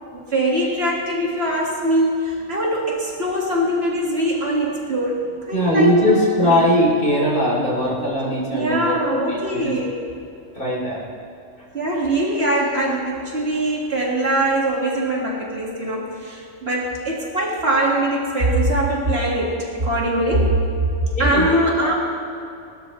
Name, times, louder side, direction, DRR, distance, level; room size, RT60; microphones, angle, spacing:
voice 1, 0.1-5.9 6.4-6.6 8.5-10.0 11.7-20.6 21.2-21.9, right 1 dB, 50° right, -3 dB, 2.2 m, -22 dB
voice 2, 5.5-9.7 10.5-11.0 21.2-21.4 21.8-21.9, equal, 40° left, -4 dB, 3.3 m, -20 dB
20.0 x 12.5 x 3.2 m, 2.6 s
omnidirectional pair, 1.3 m